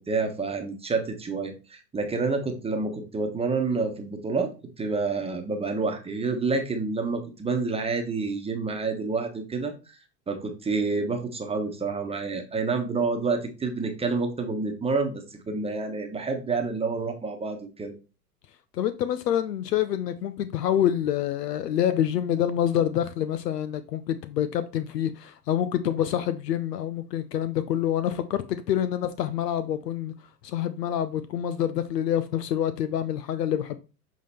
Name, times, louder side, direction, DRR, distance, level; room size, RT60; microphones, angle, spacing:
voice 1, 0.0-4.5 4.8-10.0 10.3-17.9, right 4 dB, 10° right, 1.1 m, -28 dB
voice 2, 18.8-30.1 30.4-33.8, left 10 dB, 75° left, 0.8 m, -27 dB
7.2 x 3.8 x 4.3 m
hypercardioid pair, 110°, 49 cm